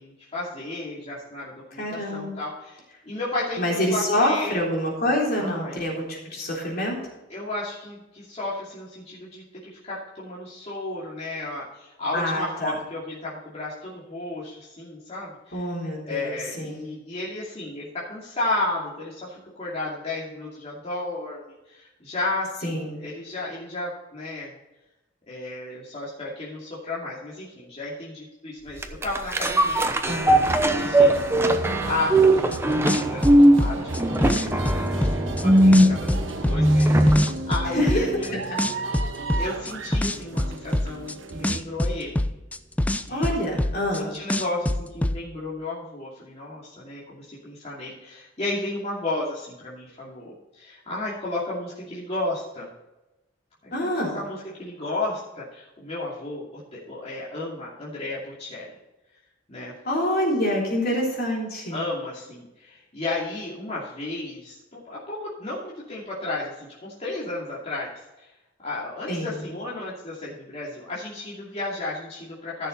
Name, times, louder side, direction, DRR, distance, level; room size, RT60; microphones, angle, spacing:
voice 1, 0.0-4.6 5.4-5.9 7.3-15.7 16.0-24.5 25.3-29.9 30.7-31.4 31.8-33.3 33.6-36.1 36.5-38.7 39.3-42.2 43.0-43.3 43.9-52.7 53.6-58.7 59.5-59.7 61.7-67.9 68.2-68.3 68.6-72.7, left 2 dB, 35° left, -7 dB, 2.6 m, -33 dB
voice 2, 1.8-2.4 3.6-7.0 12.1-12.7 15.5-16.9 22.6-23.0 30.0-30.4 37.7-38.1 38.5-38.8 43.1-44.2 53.7-54.2 59.8-61.8 69.1-69.4, left 1 dB, 55° left, -2 dB, 3.8 m, -26 dB
sound 1, 28.8-37.4 37.8-37.9, right 1 dB, 15° right, 0.8 m, -19 dB
sound 2, 30.0-41.6, right 3 dB, 90° right, 1.0 m, -35 dB
sound 3, 32.5-32.6 32.9-35.4 35.7-38.3 38.6-41.1 41.4-44.0 44.3-45.2, left 1 dB, 10° left, 0.4 m, -24 dB
14.5 x 6.8 x 4.0 m, 0.99 s
head